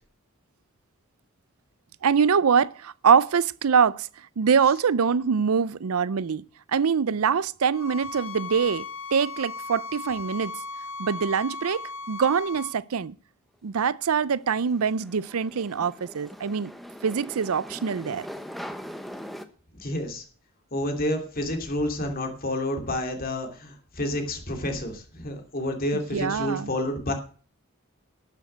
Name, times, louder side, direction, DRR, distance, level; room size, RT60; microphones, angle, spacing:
voice 1, 2.0-4.1 4.4-10.5 11.0-11.8 12.1-13.2 13.6-16.7 17.0-18.3 25.9-26.7, right 6 dB, 85° right, 0.5 m, -24 dB
sound 1, 7.7-12.7, left 3 dB, 65° left, 1.7 m, -37 dB
sound 2, 14.0-19.5, equal, ahead, 0.9 m, -41 dB
voice 2, 19.8-20.2 20.7-27.1, left 1 dB, 40° left, 2.8 m, -29 dB
12.5 x 7.3 x 7.9 m
head